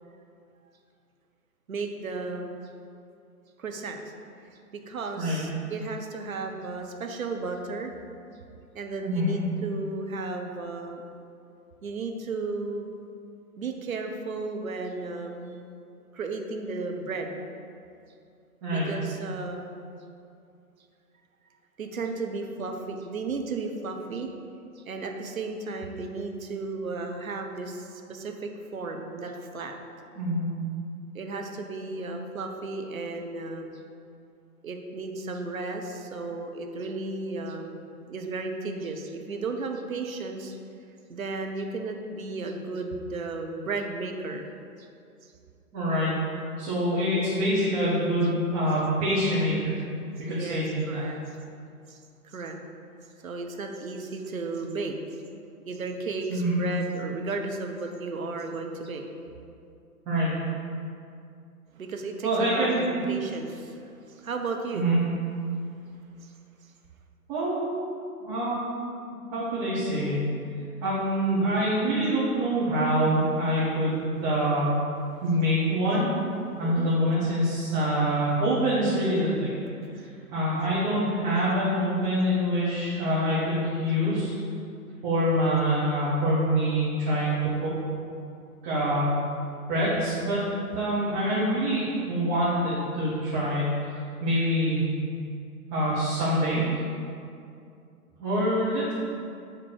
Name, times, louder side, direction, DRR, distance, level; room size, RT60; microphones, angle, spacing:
voice 1, 1.7-2.5 3.6-4.0 4.5-4.6 4.9-7.9 8.7-11.0 11.8-12.9 13.6-15.6 16.1-17.3 18.7-19.8 21.8-24.3 24.8-29.7 31.1-33.8 34.6-40.6 41.1-44.5 44.8-44.9 45.2-45.3 50.3-51.2 51.9-52.6 53.2-55.0 55.7-59.4 61.7-64.9 66.2-66.3 76.6-76.9 80.0-80.1, right 3 dB, 60° right, 3 dB, 1.0 m, -34 dB
voice 2, 9.0-9.3 18.6-18.9 30.2-30.5 45.7-46.1 46.6-49.8 50.3-51.0 56.3-56.5 60.1-60.3 62.2-63.0 64.7-65.0 67.3-67.7 68.2-68.8 69.3-70.2 70.8-74.7 75.2-76.1 76.6-79.5 80.3-84.3 85.0-87.7 88.6-89.1 89.7-90.4 90.7-94.9 95.7-96.6 98.2-98.9, equal, 20° right, -10 dB, 1.7 m, -25 dB
7.6 x 3.8 x 6.6 m, 2.5 s
figure-of-eight pair, 120°, 46 cm